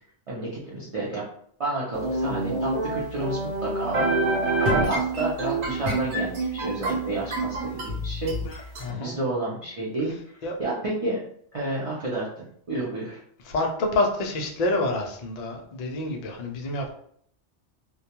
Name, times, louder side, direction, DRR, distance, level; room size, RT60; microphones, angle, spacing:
voice 1, 0.3-1.2 1.6-10.1 10.6-11.2 11.5-13.2, right 2 dB, 50° right, -7 dB, 0.4 m, -30 dB
sound 1, 2.0-8.9, right 2 dB, 70° right, 0.9 m, -27 dB
voice 2, 8.8-9.2 10.4-10.6 13.5-16.9, left 2 dB, 85° left, 2 dB, 0.3 m, -27 dB
2.2 x 2.2 x 2.8 m, 0.64 s
omnidirectional pair, 1.2 m